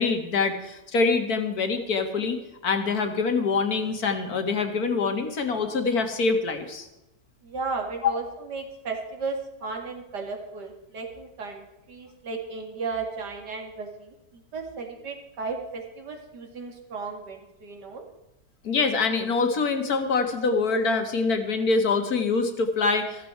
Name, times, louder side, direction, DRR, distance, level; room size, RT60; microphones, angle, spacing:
voice 1, 0.0-6.9 18.6-23.3, left 4 dB, 60° left, 6 dB, 2.1 m, -25 dB
voice 2, 7.4-18.0, right 4 dB, 75° right, 3 dB, 2.9 m, -35 dB
15.0 x 14.0 x 4.6 m, 0.94 s
omnidirectional pair, 1.9 m